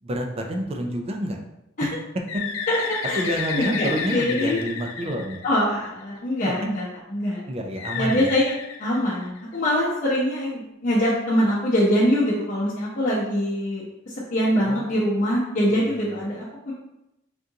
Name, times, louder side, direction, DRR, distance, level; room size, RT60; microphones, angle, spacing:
voice 1, 0.0-1.4 1.8-1.9 2.3-2.4 2.7-5.4 6.4-6.5 7.5-8.3 14.6-14.9 15.7-16.2, equal, 30° right, 3 dB, 0.4 m, -29 dB
Bird, 2.3-6.0 7.8-9.6, left 6 dB, 85° left, 0.4 m, -32 dB
voice 2, 2.7-3.2 3.5-3.9 4.1-4.6 5.4-6.8 7.1-7.4 8.0-8.5 8.8-13.8 14.3-16.7, equal, 45° left, -10 dB, 0.8 m, -23 dB
3.6 x 2.5 x 2.8 m, 0.89 s
head